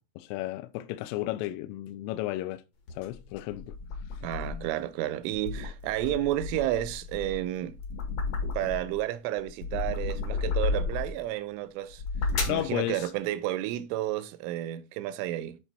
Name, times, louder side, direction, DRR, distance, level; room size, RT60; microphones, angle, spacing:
voice 1, 0.2-2.6 3.0-3.8 12.5-13.1, left 16 dB, 85° left, 3.0 m, -33 dB
sound 1, 2.9-4.8 5.2-9.0 9.4-11.2 11.8-12.7, left 4 dB, 60° left, 1.6 m, -33 dB
voice 2, 4.2-7.8 8.5-12.0 12.5-15.6, right 14 dB, 85° right, 3.0 m, -31 dB
11.0 x 4.0 x 4.1 m
omnidirectional pair, 5.9 m